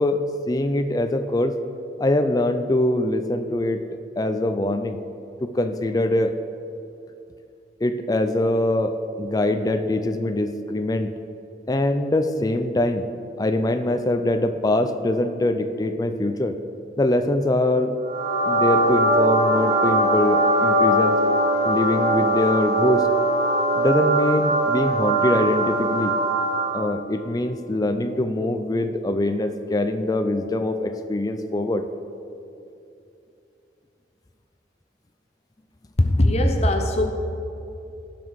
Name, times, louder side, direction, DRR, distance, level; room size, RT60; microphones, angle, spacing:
voice 1, 0.0-1.5 2.0-3.8 4.2-5.0 5.4-6.3 7.8-11.1 11.7-13.1 13.4-16.6 17.0-17.9 18.5-21.2 21.6-23.1 23.8-26.2 26.7-31.9, left 1 dB, 20° left, 7 dB, 0.4 m, -23 dB
sound 1, 18.0-26.9, right 1 dB, 60° right, 1.8 m, -21 dB
voice 2, 36.0-37.1, left 1 dB, 35° left, 5 dB, 0.8 m, -19 dB
17.0 x 6.0 x 4.8 m, 2.7 s
head